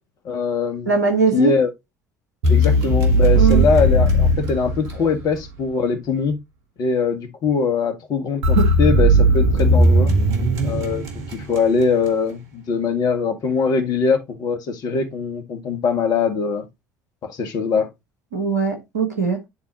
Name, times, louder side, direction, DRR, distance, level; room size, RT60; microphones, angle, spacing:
voice 1, 0.2-0.9 1.3-1.7 2.5-6.4 6.8-10.1 10.6-16.7 17.2-17.9, left 5 dB, 50° left, 1.6 m, -22 dB
voice 2, 0.8-1.6 3.3-3.6 8.5-8.7 18.3-19.4, right 5 dB, 85° right, 1.6 m, -20 dB
sound 1, 2.4-5.4 8.4-11.9, right 1 dB, 65° right, 1.8 m, -17 dB
9.8 x 4.1 x 2.9 m
figure-of-eight pair, 60°, 9 cm